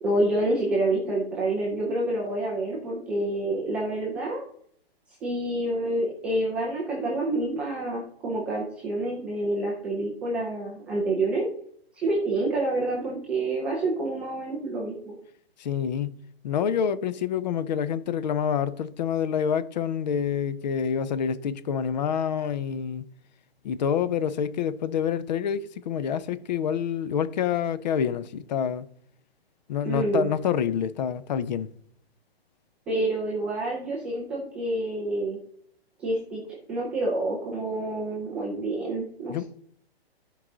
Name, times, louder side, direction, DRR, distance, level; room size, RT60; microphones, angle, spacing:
voice 1, 0.0-4.4 5.2-11.4 11.9-15.2 29.8-30.3 32.9-35.4 36.0-36.4 36.7-39.4, right 2 dB, 5° right, 0.3 m, -28 dB
voice 2, 15.6-16.2 16.4-23.1 23.6-28.9 29.7-31.7 39.3-39.4, left 8 dB, 45° left, 0.6 m, -27 dB
13.5 x 4.8 x 3.8 m
hypercardioid pair, 135°, 32 cm